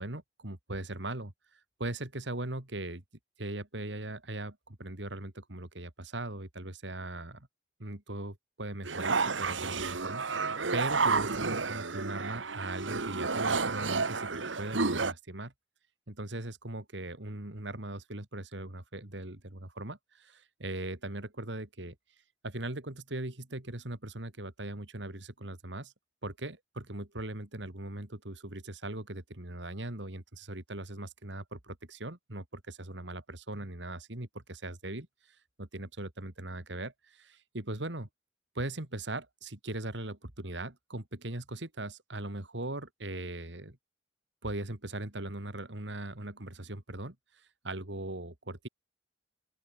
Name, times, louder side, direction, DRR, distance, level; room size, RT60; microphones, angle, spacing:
voice 1, 0.0-3.0 3.4-7.5 7.8-15.5 16.1-21.9 22.4-25.9 26.2-38.1 38.5-43.8 44.4-48.7, right 2 dB, 75° right, 2.9 m, -40 dB
sound 1, 8.8-15.1, right 4 dB, 90° right, 1.7 m, -31 dB
open air
head